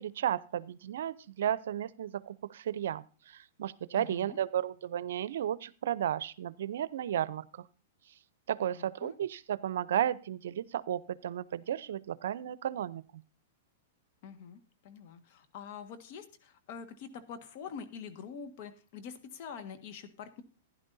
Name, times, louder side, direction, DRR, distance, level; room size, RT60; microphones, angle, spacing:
voice 1, 0.0-7.6 8.5-13.0, right 10 dB, 75° right, 18 dB, 0.6 m, -33 dB
voice 2, 3.9-4.4 8.6-9.1 14.2-20.4, left 6 dB, 50° left, 7 dB, 1.6 m, -45 dB
15.5 x 11.0 x 2.7 m, 0.36 s
hypercardioid pair, 130°, 0 cm